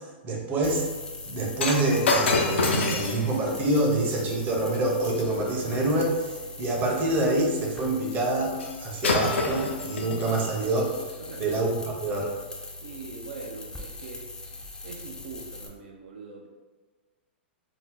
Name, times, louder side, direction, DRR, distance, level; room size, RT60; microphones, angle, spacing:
voice 1, 0.2-0.8 1.2-10.9 11.4-12.3, right 2 dB, 30° right, -1 dB, 0.7 m, -26 dB
sound 1, 0.6-15.7, left 2 dB, 10° left, 0.4 m, -41 dB
Shatter, 1.6-6.0 8.6-8.8 9.0-10.5 11.3-11.4, left 2 dB, 85° left, 0.4 m, -28 dB
voice 2, 11.2-11.5 12.8-14.3 14.8-16.5, right 4 dB, 70° right, 0 dB, 0.4 m, -42 dB
2.7 x 2.0 x 3.6 m, 1.3 s
hypercardioid pair, 120°, 6 cm